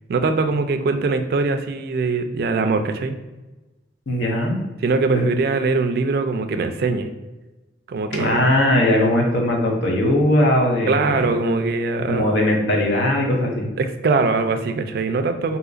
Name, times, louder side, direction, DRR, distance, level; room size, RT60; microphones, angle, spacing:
voice 1, 0.1-3.2 4.8-7.1 7.9-8.4 10.9-12.3 13.8-15.6, right 3 dB, 55° right, 8 dB, 0.3 m, -22 dB
voice 2, 4.1-4.6 5.1-5.2 8.1-11.3 12.1-13.7, left 1 dB, 90° left, 0 dB, 0.8 m, -19 dB
3.8 x 2.8 x 2.4 m, 1.1 s
head